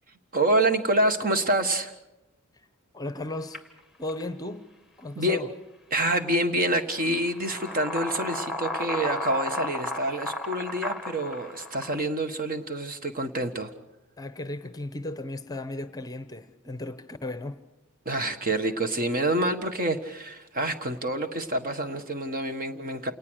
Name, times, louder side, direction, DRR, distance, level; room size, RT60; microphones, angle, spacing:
voice 1, 0.3-1.9 5.1-5.4 5.9-13.7 18.0-23.1, right 1 dB, 40° right, 1.5 m, -27 dB
voice 2, 2.9-3.6 4.0-4.7 5.0-5.5 14.2-17.6, left 2 dB, 20° left, 0.9 m, -35 dB
sound 1, 3.5-3.6 4.1-4.2 6.3-6.4 7.0-12.0, left 2 dB, 5° right, 1.8 m, -34 dB
28.0 x 19.0 x 6.4 m
head